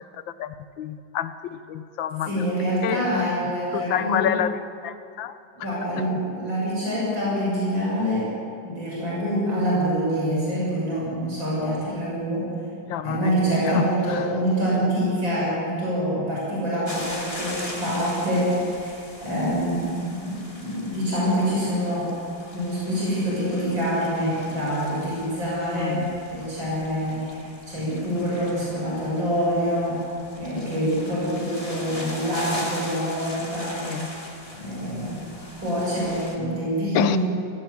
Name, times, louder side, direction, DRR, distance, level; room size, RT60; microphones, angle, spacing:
voice 1, 0.4-2.3 2.8-3.4 3.7-5.4 12.9-13.2 13.6-13.8 14.1-14.3 25.7-26.2 33.8-34.1 36.9-37.2, left 10 dB, 80° left, 11 dB, 1.6 m, -28 dB
voice 2, 2.2-4.2 5.5-8.3 8.6-12.5 13.0-22.1 22.5-30.0 30.4-33.9 34.6-37.2, equal, 80° right, -6 dB, 7.8 m, -26 dB
sound 1, 16.8-36.3, left 1 dB, 15° left, 3.0 m, -40 dB
21.5 x 17.5 x 8.1 m, 2.5 s
omnidirectional pair, 2.1 m